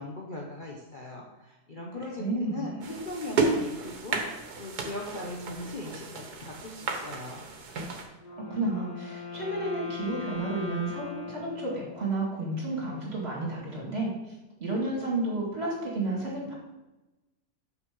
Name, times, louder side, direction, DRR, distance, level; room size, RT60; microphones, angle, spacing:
voice 1, 0.0-7.4, left 2 dB, 40° left, -2 dB, 1.0 m, -39 dB
voice 2, 2.2-2.7 8.3-16.5, right 2 dB, 40° right, -3 dB, 2.7 m, -31 dB
sound 1, 2.8-8.0, right 4 dB, 90° right, 1.6 m, -32 dB
Wind instrument woodwind instrument, 8.2-12.4, left 5 dB, 60° left, 1.9 m, -40 dB
6.5 x 5.8 x 5.3 m, 1.0 s
omnidirectional pair, 1.6 m